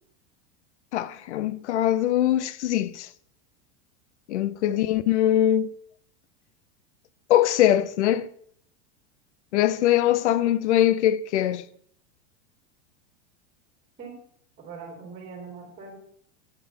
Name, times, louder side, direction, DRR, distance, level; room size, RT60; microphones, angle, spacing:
voice 1, 0.9-3.1 4.3-5.7 7.3-8.3 9.5-11.6, left 12 dB, 90° left, 0.7 m, -22 dB
voice 2, 14.6-16.0, right 5 dB, 25° right, 3.2 m, -41 dB
9.0 x 5.9 x 5.6 m
supercardioid pair, 145°, 34 cm